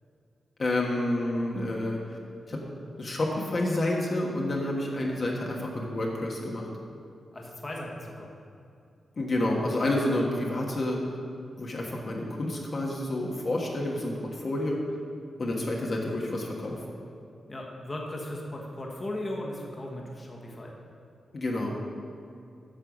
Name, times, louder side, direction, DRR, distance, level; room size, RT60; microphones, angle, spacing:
voice 1, 0.6-2.2 2.5-2.6 3.0-6.7 9.2-11.0 11.6-14.8 15.4-16.8 21.3-21.7, left 1 dB, 45° left, -2 dB, 1.3 m, -29 dB
voice 2, 7.3-8.3 17.5-20.7, left 1 dB, 25° left, -2 dB, 1.4 m, -37 dB
8.9 x 6.6 x 6.2 m, 2.5 s
wide cardioid pair, 110°, 0 cm